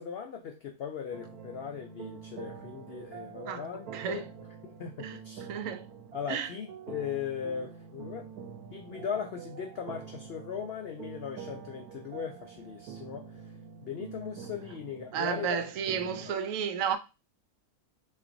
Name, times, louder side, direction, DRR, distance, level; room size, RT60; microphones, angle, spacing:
voice 1, 0.0-4.2 4.6-5.5 6.1-8.3 8.7-13.4 13.8-15.6 16.2-16.4, left 7 dB, 70° left, 0.5 m, -38 dB
sound 1, 1.1-16.3, right 7 dB, 90° right, 1.1 m, -46 dB
voice 2, 3.5-4.3 5.0-5.2 5.5-5.9 6.3-6.5 15.1-17.0, right 7 dB, 70° right, 0.9 m, -32 dB
5.5 x 2.5 x 2.6 m
omnidirectional pair, 1.6 m